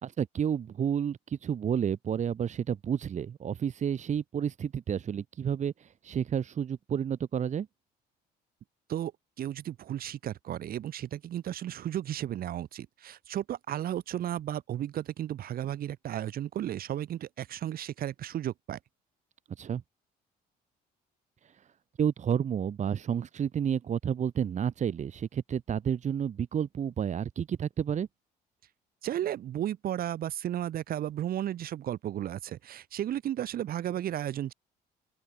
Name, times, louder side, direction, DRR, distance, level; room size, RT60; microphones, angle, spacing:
voice 1, 0.0-7.7 19.6-19.8 22.0-28.1, right 8 dB, 45° right, 3.0 m, -30 dB
voice 2, 9.4-18.8 29.0-34.5, right 11 dB, 60° right, 4.8 m, -34 dB
open air
cardioid pair, 110°, 17 cm